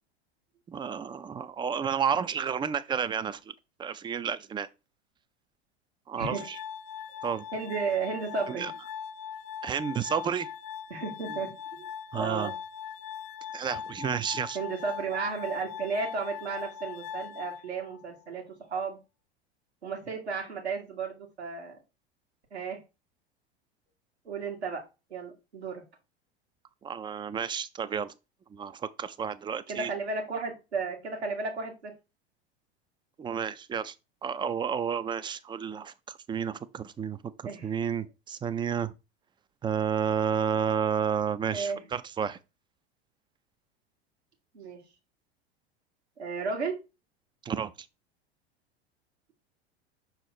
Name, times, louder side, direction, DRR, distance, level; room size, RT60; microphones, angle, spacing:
voice 1, 0.7-3.4 3.8-4.7 6.1-6.6 7.2-7.4 8.5-8.7 9.6-10.5 12.1-12.5 13.5-14.6 26.8-28.1 28.5-29.9 33.2-33.9 34.2-38.9 39.6-42.4 47.5-47.7, right 7 dB, 15° right, 0.4 m, -31 dB
voice 2, 6.1-6.5 7.5-8.8 10.9-11.5 11.8-11.9 12.1-12.5 14.5-19.0 19.8-21.8 22.5-22.8 24.3-24.8 25.1-25.8 29.7-31.9 37.4-37.8 41.5-41.8 44.5-44.8 46.2-46.8, right 4 dB, 80° right, 2.3 m, -33 dB
Glass, 6.2-18.3, left 8 dB, 45° left, 0.6 m, -40 dB
6.2 x 4.0 x 4.3 m
figure-of-eight pair, 85°, 32 cm